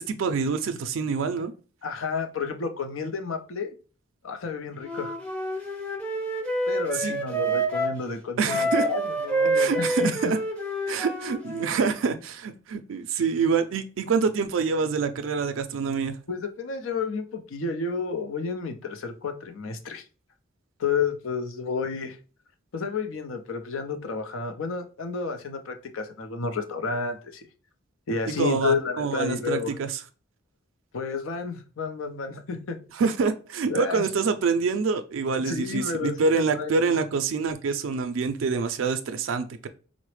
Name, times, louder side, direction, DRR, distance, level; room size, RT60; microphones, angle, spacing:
voice 1, 0.1-1.5 7.0-7.1 8.4-8.9 9.5-10.4 10.9-16.2 28.4-29.9 33.0-39.7, right 5 dB, 80° right, 8 dB, 0.4 m, -26 dB
voice 2, 1.8-3.7 4.2-5.2 6.7-10.1 16.3-20.0 20.8-22.2 22.7-27.4 28.1-29.7 30.9-32.8 33.7-34.1 35.5-37.0, left 5 dB, 85° left, 6 dB, 0.6 m, -31 dB
Wind instrument woodwind instrument, 4.8-8.0 8.4-11.8, right 1 dB, 5° left, 0.6 m, -28 dB
3.9 x 2.0 x 3.1 m, 0.36 s
head